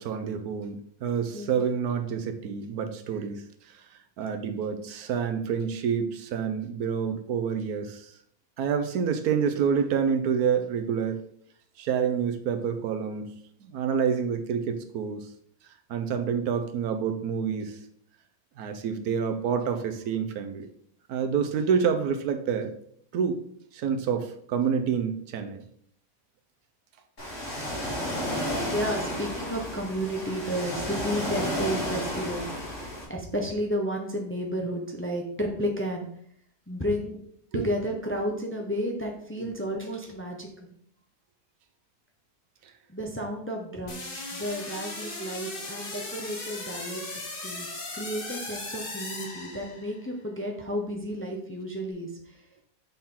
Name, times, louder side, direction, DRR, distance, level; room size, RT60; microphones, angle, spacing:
voice 1, 0.0-3.4 3.7-3.8 4.2-8.1 8.6-11.2 11.8-13.3 13.6-15.3 15.9-17.8 18.6-20.7 21.1-22.7 23.1-23.4 23.7-25.6 37.5-37.7 39.4-39.5, right 7 dB, 85° right, 7 dB, 1.2 m, -28 dB
Ocean, 27.2-33.0, equal, 60° left, 2.6 m, -32 dB
voice 2, 28.7-32.5 33.1-36.1 36.7-37.2 37.5-40.7 42.9-47.7 47.9-52.1, equal, 10° left, 1 dB, 0.6 m, -32 dB
sound 1, 43.9-50.1, left 2 dB, 40° left, 1.2 m, -37 dB
7.2 x 4.3 x 3.7 m, 0.65 s
omnidirectional pair, 1.5 m